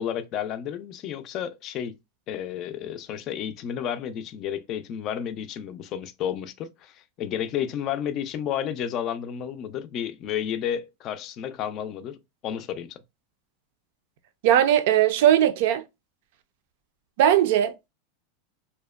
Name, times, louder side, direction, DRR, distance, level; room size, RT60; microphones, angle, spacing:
voice 1, 0.0-1.9 2.3-13.0, left 9 dB, 40° left, 0.4 m, -31 dB
voice 2, 14.4-15.8 17.2-17.9, right 11 dB, 65° right, 0.4 m, -19 dB
2.7 x 2.1 x 2.2 m
supercardioid pair, 130°, 0 cm